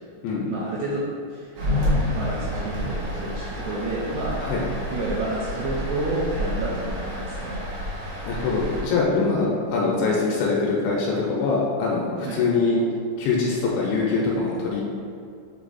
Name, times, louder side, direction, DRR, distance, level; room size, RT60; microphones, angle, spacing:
voice 1, 0.4-1.0 1.3-4.4 4.9-7.7 12.2-12.4, right 2 dB, 85° right, -6 dB, 2.4 m, -30 dB
sound 1, 1.6-8.8, left 1 dB, 70° right, 3.4 m, -29 dB
voice 2, 8.3-12.8 13.2-14.8, left 4 dB, 80° left, -4 dB, 2.8 m, -23 dB
8.3 x 2.9 x 4.1 m, 2.4 s
omnidirectional pair, 5.5 m